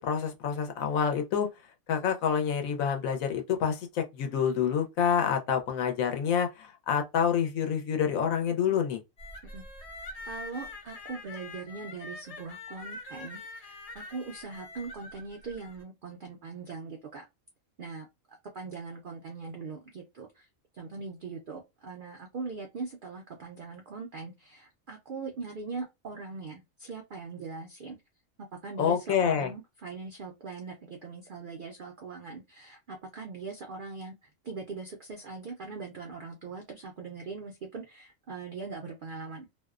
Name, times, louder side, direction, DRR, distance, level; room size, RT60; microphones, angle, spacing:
voice 1, 0.0-1.5 1.9-9.0 28.8-29.5, left 7 dB, 80° left, 1.0 m, -27 dB
sound 1, 9.2-15.8, left 2 dB, 45° left, 0.5 m, -44 dB
voice 2, 10.2-17.2 17.8-20.5 20.7-28.0 28.5-39.5, right 4 dB, 75° right, 0.4 m, -41 dB
2.6 x 2.1 x 2.3 m
omnidirectional pair, 1.4 m